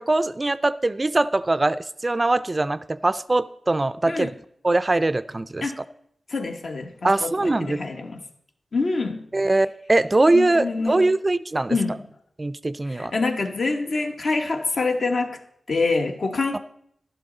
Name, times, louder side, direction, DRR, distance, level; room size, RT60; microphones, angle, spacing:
voice 1, 0.0-4.3 4.6-5.6 7.0-7.8 9.3-11.8 12.4-13.1 16.5-16.6, right 2 dB, 30° right, 15 dB, 0.3 m, -22 dB
voice 2, 6.3-8.2 8.7-9.2 10.3-11.1 11.7-12.0 12.9-15.4 15.7-16.6, left 3 dB, 70° left, 4 dB, 1.2 m, -26 dB
12.0 x 11.5 x 3.9 m, 0.69 s
wide cardioid pair, 95°, 0 cm